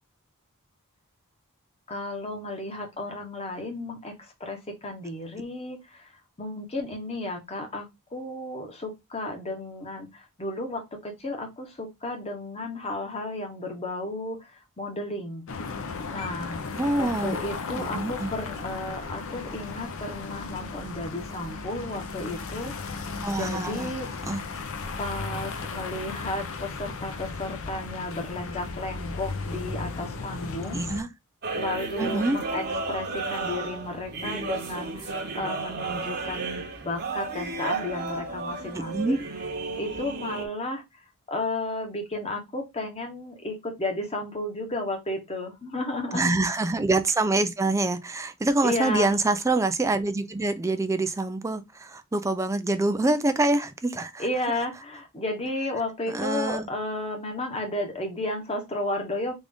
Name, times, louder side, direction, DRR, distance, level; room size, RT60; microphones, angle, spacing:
voice 1, 1.9-4.1 4.4-6.1 6.4-15.4 16.1-16.6 17.0-23.1 23.4-24.1 25.0-30.8 31.5-39.2 39.8-40.8 41.3-46.4 48.6-49.1 54.2-59.3, left 2 dB, 25° left, 1.0 m, -33 dB
sound 1, 15.5-31.0, left 4 dB, 65° left, 0.7 m, -35 dB
voice 2, 16.8-17.4 17.7-18.3 23.2-23.9 24.3-24.4 30.7-31.1 32.0-32.4 38.7-39.3 46.1-54.2 56.1-56.7, right 2 dB, 15° right, 0.4 m, -26 dB
sound 2, 31.4-40.5, right 3 dB, 45° right, 0.8 m, -33 dB
3.6 x 2.5 x 3.5 m
head